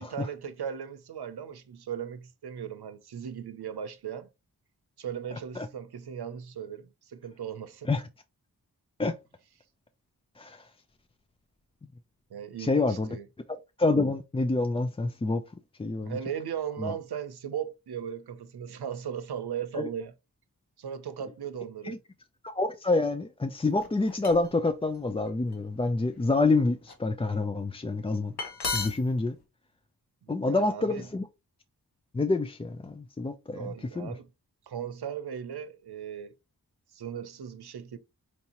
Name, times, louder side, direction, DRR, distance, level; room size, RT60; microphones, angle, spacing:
voice 1, 0.0-4.3 5.0-7.9 12.3-13.3 16.0-20.1 20.8-22.0 30.2-31.1 33.5-34.3 34.7-36.3 36.9-38.0, right 8 dB, 80° right, 0.7 m, -37 dB
voice 2, 12.6-13.1 13.8-15.4 15.8-16.2 16.8-16.9 19.8-19.9 21.8-22.0 22.4-28.3 28.7-29.4 30.3-31.3 32.1-34.1, left 3 dB, 15° left, 0.3 m, -27 dB
sound 1, 23.8-24.6 25.3-25.5 26.1-26.9 28.1-28.2 28.4-29.1, left 4 dB, 80° left, 1.2 m, -34 dB
4.6 x 2.7 x 2.9 m
wide cardioid pair, 70°, 38 cm